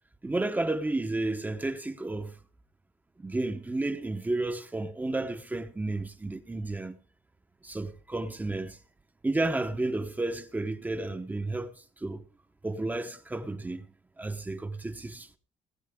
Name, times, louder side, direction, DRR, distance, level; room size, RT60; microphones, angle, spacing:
voice 1, 0.2-2.4 3.2-7.0 7.6-8.8 9.2-12.2 12.6-13.9 14.2-15.4, right 2 dB, 15° right, 0.9 m, -32 dB
18.5 x 9.8 x 3.7 m
cardioid pair, 130°, 13 cm